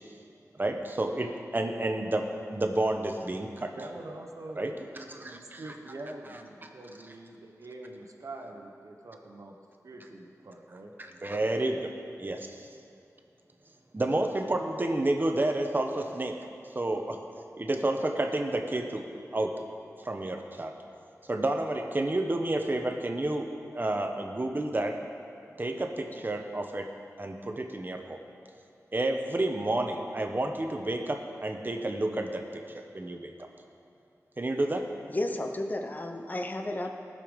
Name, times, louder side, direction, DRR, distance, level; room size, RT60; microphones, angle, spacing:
voice 1, 0.6-3.7 4.6-5.6 11.0-11.9 12.2-12.7 13.9-16.4 16.7-17.2 17.6-19.0 19.3-19.5 20.0-20.7 21.3-23.5 23.7-25.0 25.6-26.9 27.2-28.2 28.9-32.4 32.7-33.3 34.4-34.9, right 2 dB, 35° right, 4 dB, 1.1 m, -30 dB
voice 2, 3.7-9.6 9.8-10.9, right 2 dB, 70° right, 1 dB, 1.2 m, -44 dB
voice 3, 35.1-37.0, left 1 dB, 30° left, 5 dB, 0.9 m, -32 dB
19.0 x 6.9 x 5.3 m, 2.5 s
wide cardioid pair, 90°, 6 cm